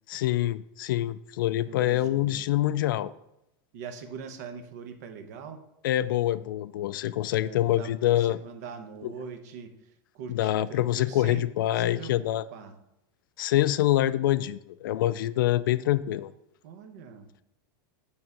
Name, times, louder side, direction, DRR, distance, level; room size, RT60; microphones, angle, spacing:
voice 1, 0.1-3.1 5.8-8.4 10.3-12.4 13.4-16.3, left 14 dB, 65° left, 15 dB, 0.4 m, -25 dB
voice 2, 1.7-2.4 3.7-5.6 7.4-11.4 11.7-12.8 16.6-17.3, right 6 dB, 50° right, 7 dB, 0.9 m, -42 dB
8.9 x 3.6 x 5.3 m, 0.86 s
supercardioid pair, 175°, 12 cm